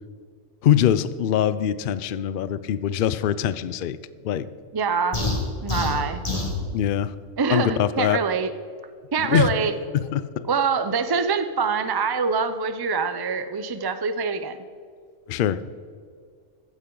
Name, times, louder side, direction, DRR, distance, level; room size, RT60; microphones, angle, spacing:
voice 1, 0.6-4.0 4.2-4.5 6.7-7.1 7.5-8.2 9.2-9.5 9.9-10.5 15.3-15.6, left 10 dB, 60° left, 15 dB, 0.6 m, -23 dB
voice 2, 4.7-5.2 5.6-6.2 7.4-8.5 9.1-9.7 10.5-14.6, right 5 dB, 35° right, 10 dB, 0.3 m, -24 dB
sound 1, 5.1-6.6, left 2 dB, 30° left, 2.0 m, -26 dB
15.0 x 10.0 x 3.9 m, 2.1 s
omnidirectional pair, 1.3 m